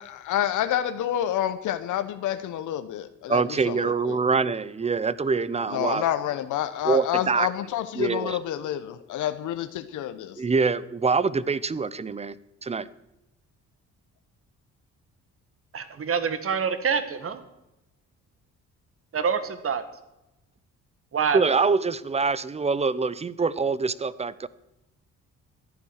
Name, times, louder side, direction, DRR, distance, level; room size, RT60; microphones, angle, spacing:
voice 1, 0.1-4.2 5.7-10.4, left 11 dB, 80° left, 0.9 m, -28 dB
voice 2, 3.3-6.0 6.8-7.5 8.0-8.4 10.4-12.4 12.6-12.9 21.3-24.5, right 4 dB, 20° right, 0.7 m, -25 dB
voice 3, 15.7-17.4 19.1-19.8 21.1-21.6, right 6 dB, 45° right, 1.7 m, -26 dB
14.5 x 10.5 x 6.4 m
cardioid pair, 90°, 30 cm